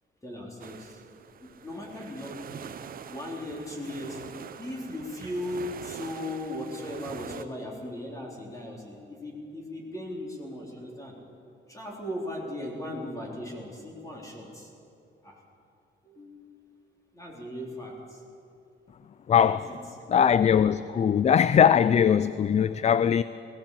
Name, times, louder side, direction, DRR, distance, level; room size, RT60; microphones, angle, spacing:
voice 1, 0.2-1.0 1.4-2.8 3.1-4.2 4.6-11.1 11.7-14.7 15.2-15.4 16.0-16.8 17.1-17.9 19.4-19.8, left 1 dB, 15° left, 3.8 m, -37 dB
sound 1, 0.6-7.4, right 8 dB, 45° right, 0.8 m, -44 dB
voice 2, 19.3-19.7 20.1-23.2, left 8 dB, 35° left, 0.4 m, -21 dB
18.0 x 17.5 x 8.5 m
cardioid pair, 145°, 20 cm